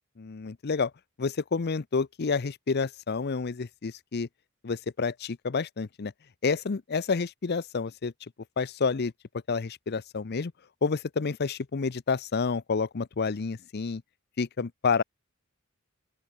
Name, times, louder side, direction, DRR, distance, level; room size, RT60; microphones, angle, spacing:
voice 1, 0.2-0.9 1.2-4.3 4.6-6.1 6.4-8.1 8.6-9.1 9.5-10.5 10.8-14.0 14.4-15.0, left 5 dB, 50° left, 0.6 m, -29 dB
open air
head